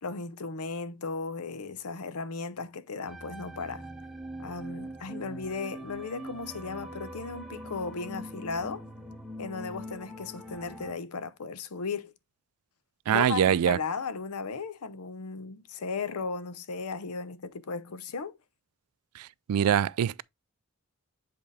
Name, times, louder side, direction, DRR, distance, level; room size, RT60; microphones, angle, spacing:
voice 1, 0.0-3.9 4.4-8.8 9.4-12.1 13.1-18.4, left 4 dB, 85° left, 0.7 m, -36 dB
sound 1, 3.1-10.9, equal, ahead, 0.8 m, -42 dB
voice 2, 13.1-13.8 19.2-20.2, right 9 dB, 85° right, 0.3 m, -24 dB
7.7 x 3.8 x 3.3 m
head